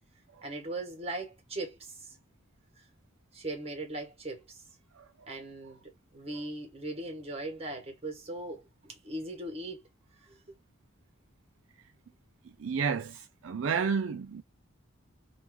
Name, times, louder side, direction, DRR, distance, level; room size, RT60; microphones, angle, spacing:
voice 1, 0.4-2.2 2.8-2.9 3.3-4.6 5.3-9.8 10.2-10.5, right 2 dB, 30° right, 1.4 m, -39 dB
voice 2, 12.6-14.4, right 6 dB, 70° right, 0.4 m, -31 dB
3.0 x 2.5 x 3.5 m
head